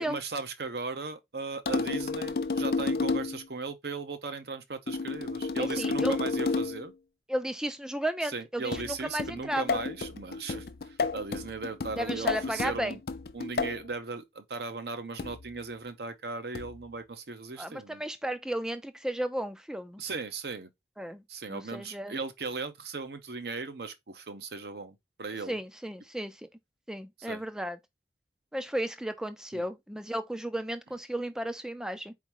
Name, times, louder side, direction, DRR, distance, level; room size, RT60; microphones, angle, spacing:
voice 1, 0.0-6.9 8.2-13.0 13.3-18.0 20.0-20.7 21.3-25.6 27.3-27.4 29.5-29.7, right 4 dB, 65° right, 0.8 m, -37 dB
sound 1, 1.7-3.4 4.9-6.9 8.7-13.9 15.2-15.5 16.5-16.9, left 4 dB, 60° left, 0.5 m, -31 dB
voice 2, 5.6-6.1 7.3-9.8 12.0-13.0 17.6-20.0 21.0-21.2 21.5-22.1 25.5-26.4 26.9-27.8 28.5-32.1, right 1 dB, 5° right, 0.4 m, -34 dB
4.5 x 3.7 x 3.0 m
head